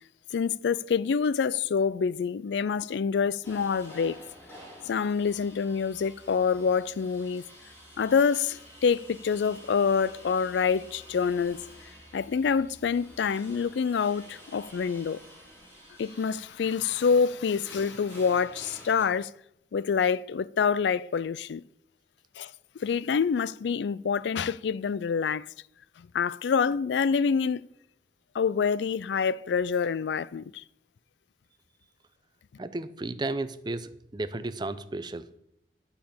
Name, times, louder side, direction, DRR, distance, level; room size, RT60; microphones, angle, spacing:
voice 1, 0.3-4.2 4.9-7.4 8.0-11.6 12.1-15.2 16.0-19.3 19.7-21.6 22.4-22.5 22.8-25.5 26.0-27.6 28.3-30.6, left 6 dB, 85° left, 0.4 m, -26 dB
sound 1, 3.4-19.0, equal, 15° left, 3.3 m, -50 dB
voice 2, 32.6-35.3, right 2 dB, 25° right, 0.6 m, -33 dB
11.0 x 5.7 x 8.6 m
head